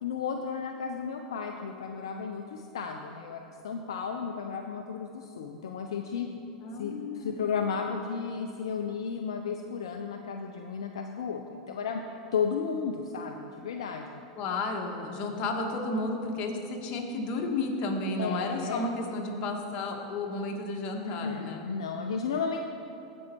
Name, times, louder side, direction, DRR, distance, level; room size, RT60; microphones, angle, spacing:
voice 1, 0.0-6.3 6.8-12.0 12.3-14.2 18.2-18.8 21.0-22.6, left 6 dB, 75° left, 4 dB, 0.5 m, -33 dB
voice 2, 6.6-7.4 14.4-21.6, left 2 dB, 45° left, 2 dB, 1.5 m, -32 dB
15.5 x 5.4 x 4.5 m, 2.8 s
hypercardioid pair, 95°, 3 cm